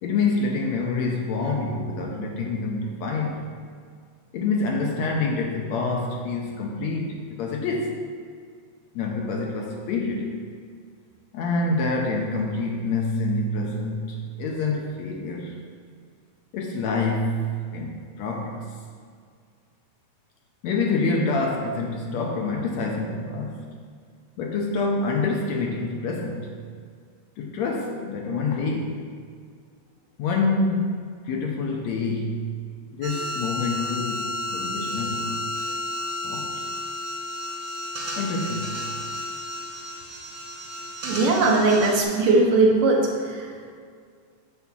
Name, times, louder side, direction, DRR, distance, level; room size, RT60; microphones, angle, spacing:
voice 1, 0.0-3.4 4.3-7.9 8.9-10.3 11.3-15.6 16.5-18.7 20.6-23.6 24.4-26.6 27.4-29.0 30.2-32.5 32.9-35.4 36.1-36.8 38.2-39.0, left 3 dB, 70° left, 0 dB, 1.8 m, -27 dB
sound 1, 33.0-42.0, left 1 dB, 50° right, 1.5 m, -32 dB
voice 2, 41.0-43.7, right 3 dB, 80° right, -1 dB, 2.8 m, -20 dB
10.5 x 3.5 x 7.3 m, 2.1 s
omnidirectional pair, 3.6 m